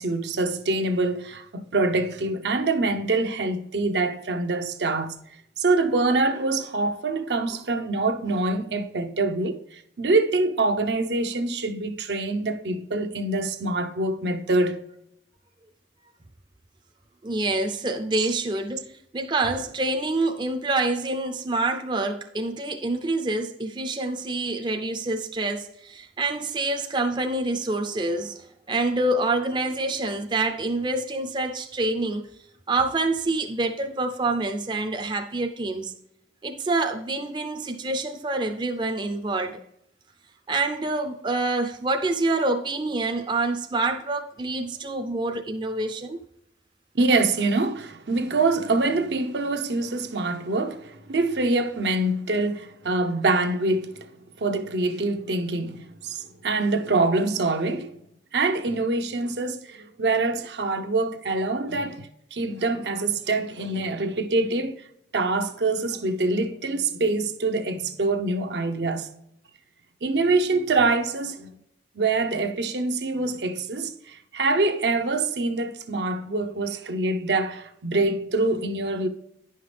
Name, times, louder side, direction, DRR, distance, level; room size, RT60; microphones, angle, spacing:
voice 1, 0.0-5.2 5.6-14.8 47.0-54.1 54.4-57.9 58.3-64.8 65.1-69.1 70.0-71.5 71.9-79.1, right 3 dB, 75° right, 0.7 m, -25 dB
voice 2, 17.2-32.2 32.7-35.9 36.4-39.6 40.5-46.2, right 2 dB, 25° right, 0.4 m, -27 dB
9.8 x 5.6 x 3.3 m
head